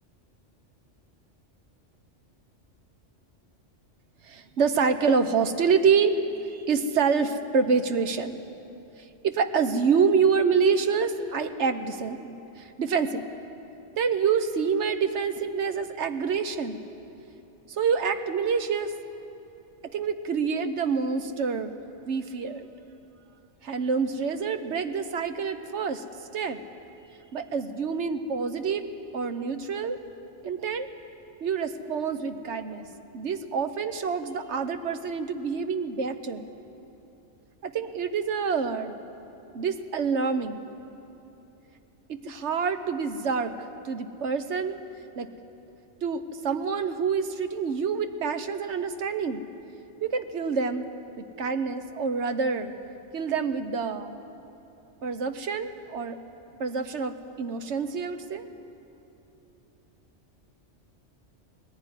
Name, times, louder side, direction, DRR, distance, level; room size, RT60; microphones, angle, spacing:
voice 1, 4.2-8.4 9.2-13.2 14.0-16.8 17.7-18.9 19.9-21.7 22.1-22.7 23.6-26.0 26.3-26.6 27.3-28.9 29.1-30.0 30.4-30.9 31.4-32.9 33.1-36.5 37.6-39.0 39.5-40.7 42.1-43.5 43.8-44.8 45.2-45.3 46.0-49.5 50.0-50.9 51.2-52.7 53.1-54.2 55.0-56.2 56.6-58.5, right 5 dB, 70° right, 9 dB, 1.2 m, -27 dB
19.0 x 15.0 x 9.8 m, 3.0 s
omnidirectional pair, 1.2 m